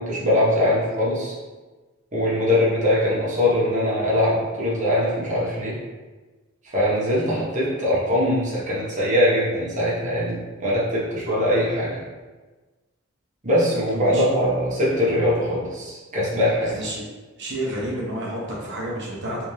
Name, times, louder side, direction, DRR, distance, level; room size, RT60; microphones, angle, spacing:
voice 1, 0.0-1.3 2.1-5.7 6.7-12.0 13.4-16.8, left 1 dB, 35° right, -7 dB, 1.2 m, -22 dB
voice 2, 13.9-14.2 16.6-17.0 17.4-19.5, right 1 dB, 55° right, -4 dB, 1.0 m, -31 dB
3.5 x 3.4 x 3.3 m, 1.3 s
head